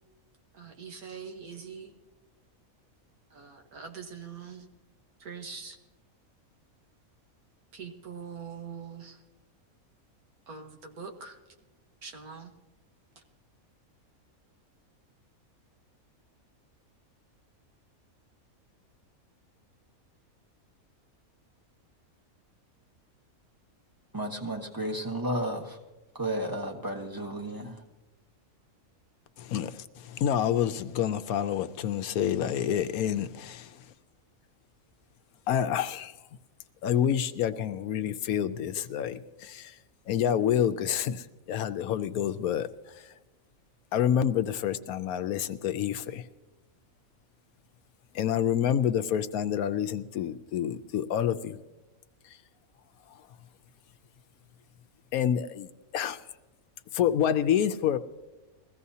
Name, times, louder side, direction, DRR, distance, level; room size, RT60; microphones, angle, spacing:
voice 1, 0.6-1.9 3.3-4.7 5.2-5.8 7.7-9.2 10.5-11.4 12.0-12.5, right 6 dB, 85° right, 4 dB, 1.8 m, -43 dB
voice 2, 24.1-25.8 26.1-27.8, right 1 dB, 15° right, 1 dB, 1.4 m, -33 dB
voice 3, 29.4-33.7 35.5-36.1 36.8-39.7 40.1-42.7 43.9-46.3 48.1-51.6 55.1-56.2 56.9-58.0, left 9 dB, 85° left, 10 dB, 1.1 m, -28 dB
21.0 x 15.5 x 2.8 m, 1.1 s
omnidirectional pair, 1.5 m